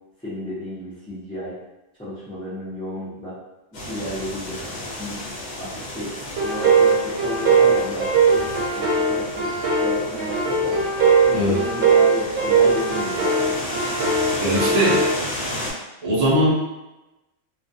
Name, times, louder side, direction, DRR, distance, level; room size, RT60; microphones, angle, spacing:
voice 1, 0.2-1.6 2.0-3.3 3.7-5.2 5.6-6.1 6.4-9.5 9.8-10.9 11.3-13.5, left 1 dB, 10° left, -13 dB, 0.4 m, -33 dB
sound 1, 3.7-15.7, left 1 dB, 60° left, 1.1 m, -33 dB
sound 2, 6.4-15.1, right 4 dB, 80° right, 1.0 m, -20 dB
voice 2, 14.4-15.0 16.0-16.5, equal, 50° right, -4 dB, 0.5 m, -20 dB
2.3 x 2.2 x 2.6 m, 0.97 s
omnidirectional pair, 1.3 m